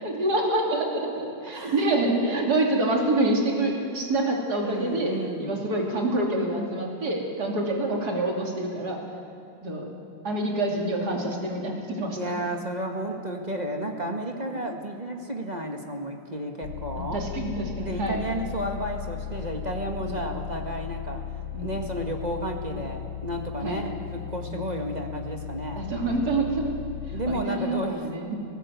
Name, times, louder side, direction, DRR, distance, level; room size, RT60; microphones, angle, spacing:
voice 1, 0.0-5.1 5.4-9.0 9.6-9.9 10.2-12.3 17.0-18.2 20.0-20.2 21.5-21.8 23.6-23.8 24.5-24.7 25.7-26.7 27.1-28.4, right 2 dB, 50° right, 0 dB, 3.4 m, -27 dB
voice 2, 1.5-1.8 4.6-5.6 12.1-17.2 17.8-21.2 21.6-25.9 27.1-28.3, right 1 dB, 20° right, 3 dB, 1.5 m, -32 dB
sound 1, 16.6-27.4, left 10 dB, 70° left, 1.5 m, -36 dB
19.0 x 17.0 x 8.2 m, 2.7 s
omnidirectional pair, 2.2 m